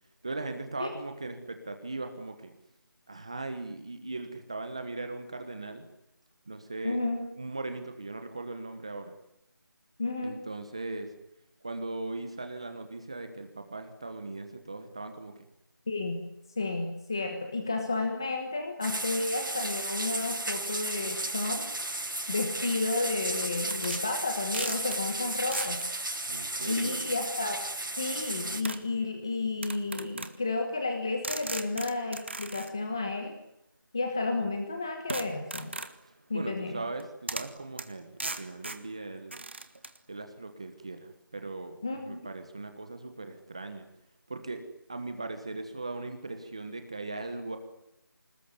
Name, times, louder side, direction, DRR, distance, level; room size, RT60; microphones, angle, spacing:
voice 1, 0.2-2.5 3.1-5.8 6.5-7.0 7.3-9.1 10.2-11.1 11.6-15.4 26.3-27.1 36.3-39.4 40.1-43.9 44.3-44.6 44.9-47.6, right 2 dB, 15° right, 7 dB, 1.3 m, -39 dB
voice 2, 6.8-7.3 10.0-10.4 15.9-16.2 16.6-21.6 22.3-25.8 26.7-27.6 28.0-33.3 33.9-35.7 36.3-36.8 41.8-42.2, left 3 dB, 10° left, 4 dB, 1.2 m, -32 dB
sound 1, 18.8-28.6, right 2 dB, 70° right, 6.4 m, -34 dB
sound 2, 23.7-24.0 24.5-25.0 25.5-25.8 27.3-27.4 28.6-28.9 29.6-30.3 31.2-32.7 35.1-36.0 37.0-37.1 37.3-37.5 37.8-37.9 38.2-38.8 39.3-40.0, right 2 dB, 30° right, 1.7 m, -37 dB
28.5 x 20.0 x 9.6 m, 0.82 s
figure-of-eight pair, 180°, 11 cm